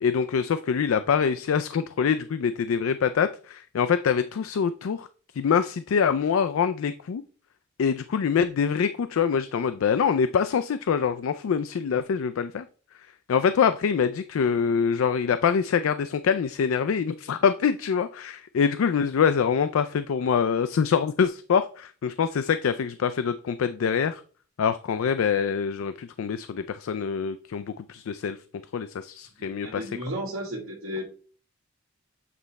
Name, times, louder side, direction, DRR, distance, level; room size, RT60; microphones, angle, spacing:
voice 1, 0.0-5.1 5.3-7.2 7.8-12.7 13.3-24.2 24.6-28.4 28.7-30.0, left 6 dB, 80° left, 12 dB, 0.4 m, -25 dB
voice 2, 29.4-31.1, equal, 80° right, -4 dB, 1.5 m, -34 dB
8.3 x 4.1 x 3.3 m, 0.40 s
head